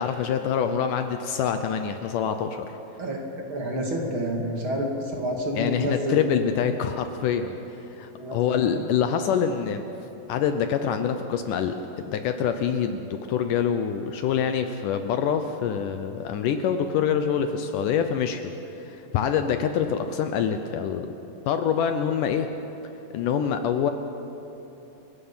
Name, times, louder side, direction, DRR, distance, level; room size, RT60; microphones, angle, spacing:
voice 1, 0.0-2.8 5.6-7.6 7.9-9.8 10.3-21.1 21.5-22.5 23.1-23.9, left 8 dB, 75° left, 7 dB, 2.0 m, -25 dB
voice 2, 3.5-6.2 8.2-8.4 8.8-8.9, equal, 40° right, 1 dB, 2.6 m, -28 dB
28.5 x 16.5 x 5.6 m, 3.0 s
omnidirectional pair, 4.2 m